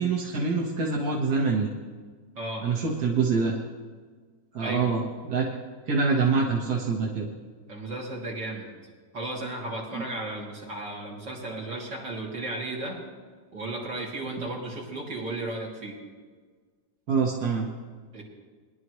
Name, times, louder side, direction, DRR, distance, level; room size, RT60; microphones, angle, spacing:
voice 1, 0.0-1.7 2.6-3.6 4.5-5.5 5.9-7.3 10.0-10.1 17.1-17.7, right 4 dB, 60° right, -2 dB, 1.8 m, -25 dB
voice 2, 2.3-2.7 4.6-5.0 7.7-8.7 9.1-13.0 13.5-16.0 18.1-18.2, right 2 dB, 75° right, -4 dB, 3.4 m, -34 dB
22.0 x 11.0 x 3.2 m, 1.5 s
omnidirectional pair, 1.9 m